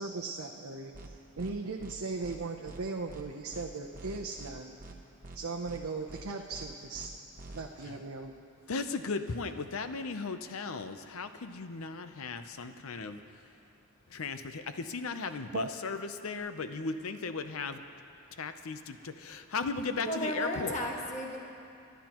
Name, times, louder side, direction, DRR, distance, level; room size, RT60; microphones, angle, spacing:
voice 1, 0.0-4.8 5.3-7.1 7.5-8.3 15.5-15.7, right 3 dB, 80° right, 1 dB, 0.7 m, -38 dB
sound 1, 0.9-1.1 1.4-1.5 1.8-1.9 2.2-2.4 2.7-2.8 3.1-3.2 3.5-3.7 3.9-4.5 4.8-4.9 5.2-5.4 5.7-5.8 6.1-6.2 6.5-6.7 6.9-7.1 7.4-7.6, right 2 dB, 40° right, 1.0 m, -46 dB
voice 2, 8.7-13.2 14.1-17.8 18.4-20.8, left 4 dB, 75° left, 9 dB, 0.7 m, -36 dB
voice 3, 20.1-21.4, equal, 35° left, -1 dB, 1.4 m, -34 dB
26.5 x 11.5 x 3.0 m, 2.6 s
head